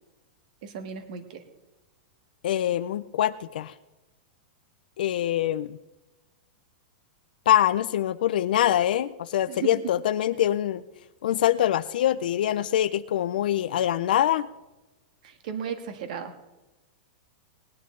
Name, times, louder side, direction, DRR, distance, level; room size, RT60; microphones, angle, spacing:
voice 1, 0.6-1.4 9.5-9.8 15.2-16.3, right 8 dB, 55° right, 7 dB, 1.6 m, -35 dB
voice 2, 2.4-3.7 5.0-5.8 7.5-10.8 11.2-14.5, left 11 dB, 75° left, 12 dB, 0.5 m, -24 dB
19.0 x 10.5 x 3.8 m, 1.1 s
supercardioid pair, 165°, 5 cm